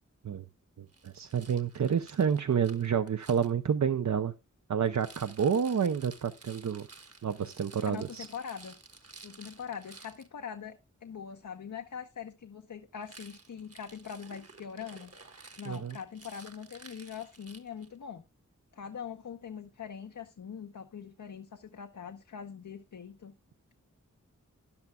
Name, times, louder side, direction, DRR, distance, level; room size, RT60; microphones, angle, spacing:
voice 1, 0.8-4.3 4.7-6.9 7.2-8.3 15.6-16.0, right 7 dB, 70° right, 0.6 m, -29 dB
Rattle, 0.9-3.5 4.9-10.3 13.0-18.0, right 3 dB, 55° right, 1.4 m, -53 dB
voice 2, 7.8-8.7 9.2-15.1 15.6-18.2 18.7-23.3, left 7 dB, 85° left, 0.8 m, -42 dB
13.0 x 10.5 x 2.3 m
wide cardioid pair, 60°, 30 cm